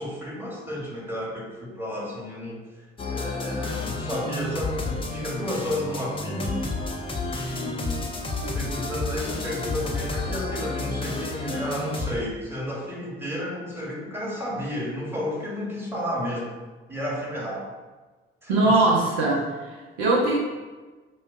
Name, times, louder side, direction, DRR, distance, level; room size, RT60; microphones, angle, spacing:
voice 1, 0.0-2.7 3.1-6.6 7.3-8.1 8.5-16.5 16.9-17.7 18.4-18.7, equal, 5° right, -4 dB, 1.1 m, -32 dB
sound 1, 3.0-12.1, left 3 dB, 20° left, 0.5 m, -31 dB
voice 2, 18.5-20.4, right 2 dB, 70° right, -4 dB, 0.8 m, -21 dB
5.3 x 2.2 x 2.3 m, 1.3 s
figure-of-eight pair, 45°, 30 cm